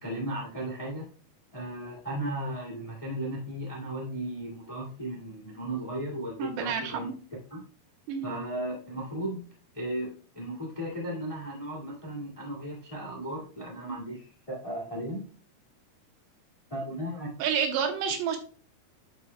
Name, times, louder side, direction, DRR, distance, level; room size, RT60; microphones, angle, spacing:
voice 1, 0.0-1.1 1.5-7.1 7.5-7.6 8.2-9.4 9.7-10.1 10.3-15.2 16.7-17.3, right 1 dB, 40° left, -3 dB, 0.4 m, -35 dB
voice 2, 6.4-7.1 8.1-8.3 17.4-18.4, right 7 dB, 90° right, 5 dB, 3.2 m, -29 dB
11.5 x 5.2 x 2.2 m, 0.41 s
omnidirectional pair, 4.7 m